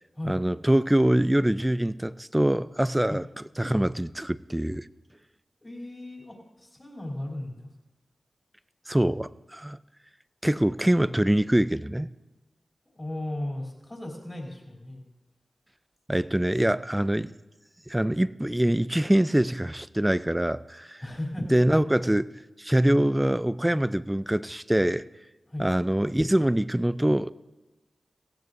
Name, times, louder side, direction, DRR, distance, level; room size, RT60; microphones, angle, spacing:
voice 1, 0.2-3.2 3.6-4.9 8.9-9.8 10.4-12.1 16.1-17.3 17.9-21.0 21.5-22.2 22.6-25.1 25.6-27.3, right 1 dB, 10° right, 0.4 m, -24 dB
voice 2, 5.6-7.7 12.9-15.0 21.0-21.8 25.5-25.7, left 1 dB, 25° left, 3.0 m, -36 dB
17.5 x 16.0 x 2.6 m
cardioid pair, 65°, 0 cm